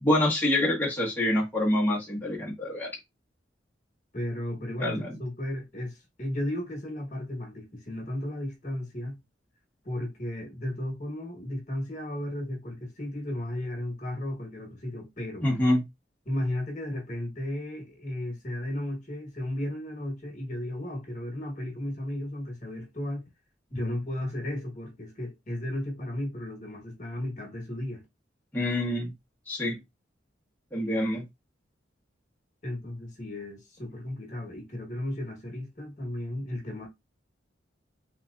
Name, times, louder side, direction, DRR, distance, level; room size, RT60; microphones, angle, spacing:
voice 1, 0.0-2.9 4.8-5.1 15.4-15.8 28.5-29.1 29.5-29.8 30.7-31.2, left 1 dB, 10° left, 1.1 m, -26 dB
voice 2, 4.1-9.2 9.8-15.5 16.2-23.2 23.7-28.0 32.6-36.9, left 1 dB, 40° left, 1.4 m, -34 dB
3.4 x 3.2 x 2.5 m
head